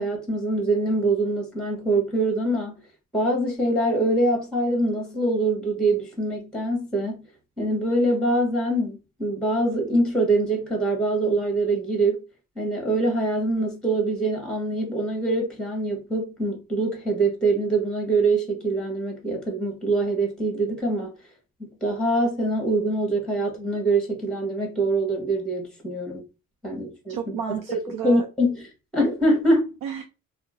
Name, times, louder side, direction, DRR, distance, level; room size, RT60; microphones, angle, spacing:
voice 1, 0.0-2.7 3.1-7.3 7.6-12.2 12.6-21.1 21.6-26.2 26.6-27.4 27.7-27.8 28.0-28.6 28.9-29.7, right 2 dB, ahead, 1.2 m, -24 dB
voice 2, 27.1-28.3 29.8-30.0, right 8 dB, 75° right, 0.6 m, -32 dB
2.8 x 2.1 x 3.8 m
cardioid pair, 90°, 34 cm